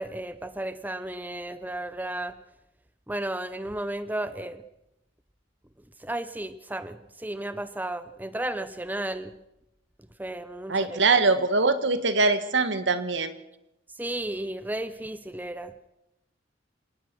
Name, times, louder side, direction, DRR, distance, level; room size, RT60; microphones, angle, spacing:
voice 1, 0.0-2.4 3.1-4.6 6.0-9.4 10.2-11.0 14.0-15.7, right 1 dB, 10° right, 12 dB, 0.7 m, -33 dB
voice 2, 10.7-13.3, right 3 dB, 70° right, 11 dB, 1.6 m, -23 dB
26.5 x 18.0 x 6.1 m, 0.89 s
head